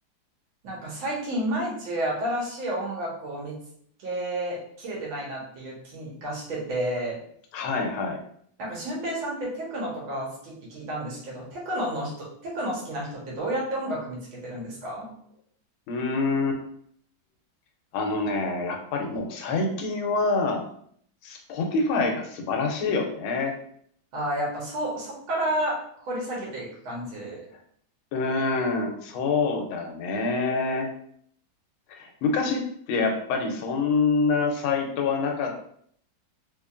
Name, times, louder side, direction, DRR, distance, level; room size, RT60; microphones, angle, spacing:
voice 1, 0.6-3.6 4.0-7.2 8.6-15.1 24.1-27.4, right 1 dB, 80° right, -4 dB, 2.0 m, -31 dB
voice 2, 7.5-8.2 15.9-16.6 17.9-20.6 21.2-23.5 28.1-30.9 31.9-35.7, left 4 dB, 90° left, 3 dB, 1.5 m, -26 dB
3.9 x 2.9 x 2.4 m, 0.64 s
omnidirectional pair, 2.2 m